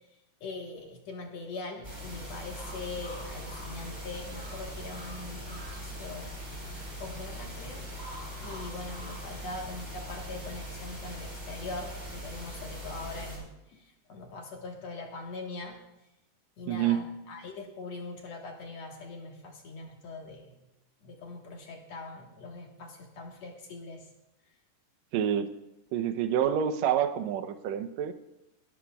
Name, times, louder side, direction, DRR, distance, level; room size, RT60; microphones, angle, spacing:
voice 1, 0.4-6.3 7.0-7.9 8.4-15.8 16.6-20.7 21.0-24.1, left 3 dB, 60° left, 1 dB, 2.3 m, -42 dB
sound 1, 1.8-13.4, equal, 5° right, 4.3 m, -41 dB
sound 2, 2.0-9.8, left 1 dB, 20° right, 4.7 m, -51 dB
voice 2, 16.7-17.0 25.1-25.5 25.9-28.1, right 9 dB, 75° right, 9 dB, 1.6 m, -27 dB
22.0 x 13.0 x 2.3 m, 0.92 s
omnidirectional pair, 3.9 m